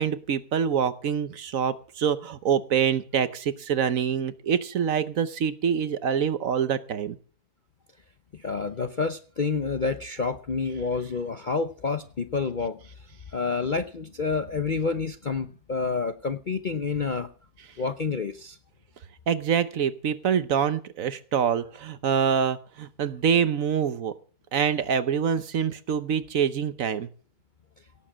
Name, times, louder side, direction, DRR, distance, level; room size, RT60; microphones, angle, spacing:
voice 1, 0.0-7.2 19.3-24.2 24.5-27.1, right 7 dB, 60° right, 13 dB, 1.1 m, -25 dB
voice 2, 8.4-12.8 13.3-17.3 17.8-18.6, left 4 dB, 45° left, 9 dB, 0.6 m, -28 dB
17.5 x 7.5 x 7.3 m, 0.42 s
omnidirectional pair, 1.8 m